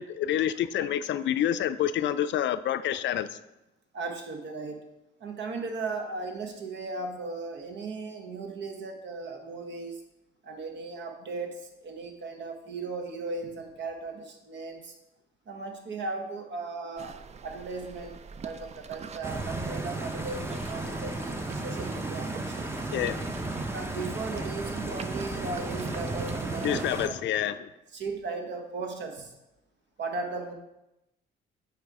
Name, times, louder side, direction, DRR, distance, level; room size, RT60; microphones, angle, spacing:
voice 1, 0.0-3.4 22.9-23.3 26.6-27.7, left 11 dB, 65° left, 0.4 m, -28 dB
voice 2, 3.9-4.8 5.2-10.0 10.4-14.9 15.5-22.7 23.7-27.1 27.9-29.3 30.0-30.5, right 3 dB, 65° right, 1.2 m, -37 dB
sound 1, 17.0-27.0, right 6 dB, 35° right, 0.4 m, -44 dB
Stream, 19.2-27.1, right 2 dB, 10° right, 0.7 m, -34 dB
8.7 x 3.2 x 4.7 m
cardioid pair, 90°, 20 cm